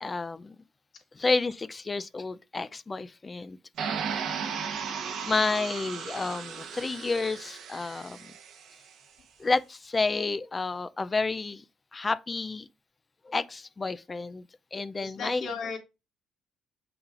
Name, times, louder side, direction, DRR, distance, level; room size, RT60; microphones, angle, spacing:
voice 1, 0.0-0.6 1.2-3.6 5.3-8.3 9.4-11.6 11.9-12.7 13.2-14.4 14.7-15.5, left 3 dB, 30° left, 0.4 m, -30 dB
sound 1, 3.8-8.8, right 6 dB, 80° right, 1.0 m, -36 dB
voice 2, 4.4-4.7 15.0-15.8, left 5 dB, 70° left, 2.3 m, -37 dB
6.7 x 5.9 x 2.5 m
cardioid pair, 90°, 0 cm